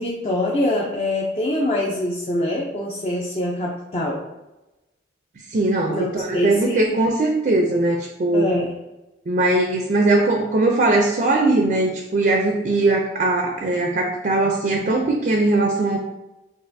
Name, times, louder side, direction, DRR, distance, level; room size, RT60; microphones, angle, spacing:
voice 1, 0.0-4.2 5.9-7.0 8.3-8.7, left 1 dB, 30° left, -4 dB, 0.5 m, -24 dB
voice 2, 5.5-8.6 9.3-16.0, right 2 dB, 45° right, 2 dB, 0.5 m, -20 dB
6.5 x 2.5 x 2.6 m, 1.0 s
head